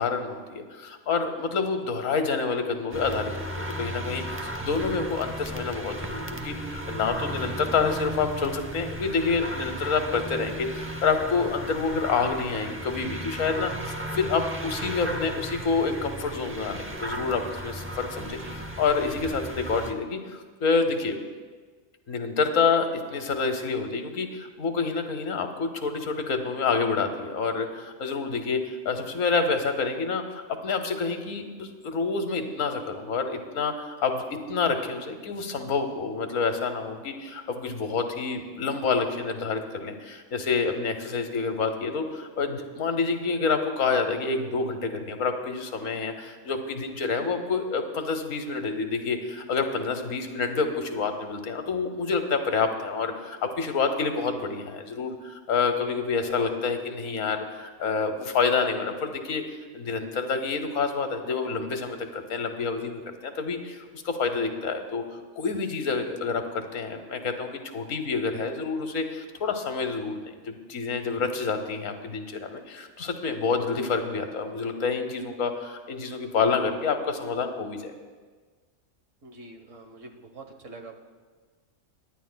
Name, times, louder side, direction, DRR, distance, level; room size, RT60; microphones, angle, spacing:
voice 1, 0.0-21.1 22.1-59.4 59.7-65.0 65.4-77.9, left 4 dB, 85° left, 7 dB, 1.3 m, -28 dB
sound 1, 2.9-19.9, right 1 dB, 20° right, 0.3 m, -35 dB
voice 2, 4.0-4.3 18.4-18.6 79.2-81.0, right 2 dB, 75° right, 4 dB, 1.5 m, -45 dB
23.0 x 10.0 x 2.2 m, 1.4 s
omnidirectional pair, 1.3 m